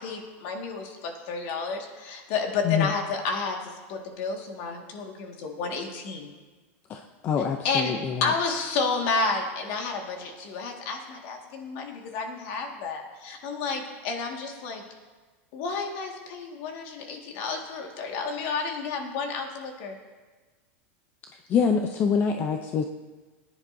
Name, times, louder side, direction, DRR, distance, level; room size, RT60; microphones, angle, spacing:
voice 1, 0.0-6.3 7.6-7.9 8.2-14.8 15.5-20.0, left 4 dB, 50° left, 2 dB, 1.8 m, -31 dB
voice 2, 2.6-2.9 6.9-8.3 21.5-22.8, left 6 dB, 25° left, 5 dB, 0.5 m, -25 dB
18.0 x 10.0 x 2.7 m, 1.3 s
supercardioid pair, 155°, 7 cm